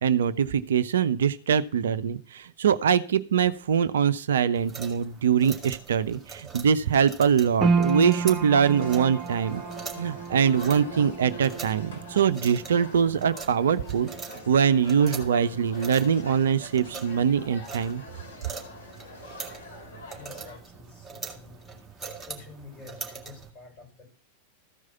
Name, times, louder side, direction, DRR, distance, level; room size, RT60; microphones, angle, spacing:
voice 1, 0.0-9.6 10.0-14.1 14.5-18.0, right 7 dB, 65° right, 14 dB, 0.4 m, -23 dB
sound 1, 4.5-23.5, right 4 dB, 10° right, 2.0 m, -43 dB
sound 2, 7.6-20.0 20.3-21.2 21.7-21.8, right 4 dB, 25° right, 1.3 m, -34 dB
sound 3, 8.6-20.6, left 2 dB, 60° left, 2.5 m, -45 dB
voice 2, 20.1-21.8 22.2-24.1, left 4 dB, 30° left, 1 dB, 5.4 m, -48 dB
14.5 x 4.8 x 5.6 m, 0.43 s
figure-of-eight pair, 90°, 0 cm